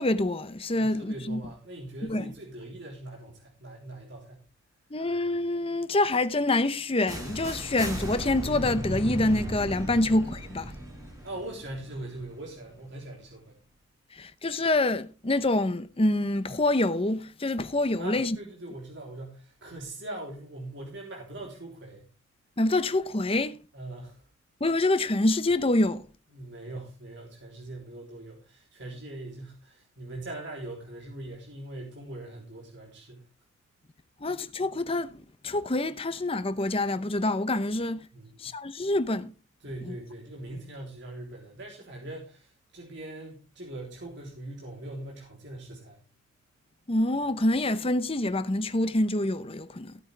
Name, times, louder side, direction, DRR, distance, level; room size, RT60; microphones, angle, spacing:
voice 1, 0.0-1.4 2.0-2.2 4.9-10.7 14.1-18.4 22.6-23.6 24.6-26.1 34.2-38.1 38.4-39.3 39.9-40.0 46.9-50.0, left 2 dB, 30° left, 0.8 m, -26 dB
voice 2, 0.8-4.4 9.9-10.1 11.2-13.6 17.9-22.1 23.7-24.2 26.3-33.3 38.1-38.5 39.6-46.0, right 1 dB, 65° right, 3.5 m, -41 dB
sound 1, 7.1-12.9, equal, 20° right, 4.5 m, -36 dB
16.0 x 9.0 x 3.4 m
head